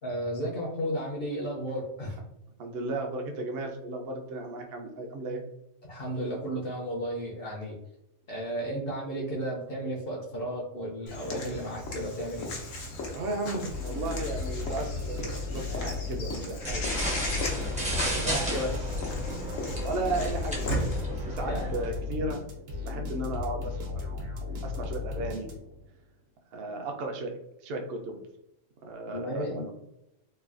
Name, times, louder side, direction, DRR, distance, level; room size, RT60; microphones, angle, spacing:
voice 1, 0.0-2.2 5.8-7.8 8.3-12.5 21.4-21.8 29.1-29.7, right 1 dB, 60° left, -2 dB, 0.7 m, -33 dB
voice 2, 2.6-5.4 13.1-16.9 17.6-22.4 22.8-24.0 24.6-25.5 26.5-27.3 27.6-28.2 28.8-29.7, right 2 dB, 65° right, 3 dB, 0.7 m, -35 dB
Walk footsteps / Bird vocalization bird call bird song, 11.1-21.0, left 1 dB, 85° left, 1.1 m, -36 dB
sound 1, 13.7-25.9, left 4 dB, 80° right, 1.1 m, -35 dB
sound 2, 16.6-21.9, equal, 10° right, 0.4 m, -34 dB
3.2 x 2.2 x 2.4 m, 0.85 s
omnidirectional pair, 1.3 m